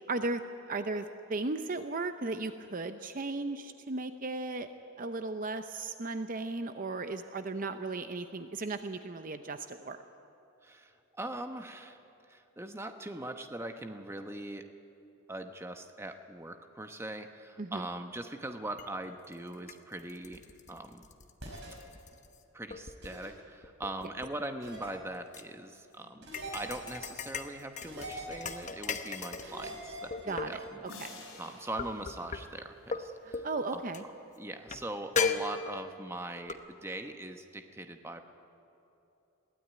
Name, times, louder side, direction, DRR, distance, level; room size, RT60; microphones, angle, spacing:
voice 1, 0.1-4.7 5.0-10.0 17.6-17.9 30.3-30.7 31.0-31.1 33.4-34.0, right 3 dB, 40° right, 8 dB, 0.6 m, -36 dB
voice 2, 10.6-12.0 12.3-14.7 15.3-20.4 20.7-21.1 22.5-33.5 33.7-33.8 34.4-38.2, right 1 dB, 10° right, 6 dB, 0.9 m, -41 dB
sound 1, 18.8-18.9 19.3-22.4 22.7-23.2 23.6-25.4 26.3-29.6 30.1-30.8 31.8-32.4 32.9-33.0 33.3-33.5 33.9-34.0 34.7-34.8 35.2-36.0 36.5-36.6, left 5 dB, 35° left, 0.9 m, -36 dB
sound 2, 21.4-21.7 23.0-23.3 24.6-24.9 26.2-27.0 27.8-28.7 29.4-30.6, right 1 dB, 55° right, 5.1 m, -43 dB
sound 3, 30.9-33.4, left 3 dB, 65° left, 5.4 m, -51 dB
22.0 x 16.0 x 9.4 m, 2.9 s
head